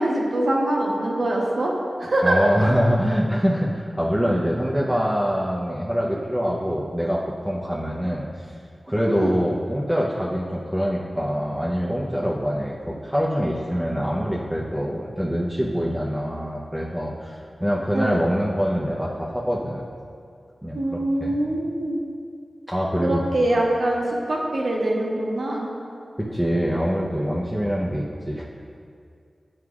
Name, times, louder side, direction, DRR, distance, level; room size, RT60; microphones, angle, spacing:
voice 1, 0.0-1.7 2.0-2.5 9.1-9.3 17.9-18.2 20.7-22.0 23.0-25.7, right 1 dB, 80° right, -3 dB, 1.0 m, -23 dB
voice 2, 2.2-8.5 8.9-19.9 20.6-21.4 22.7-23.2 26.2-28.4, equal, 10° right, -5 dB, 0.6 m, -24 dB
9.4 x 4.8 x 2.4 m, 2.3 s
wide cardioid pair, 60°, 0 cm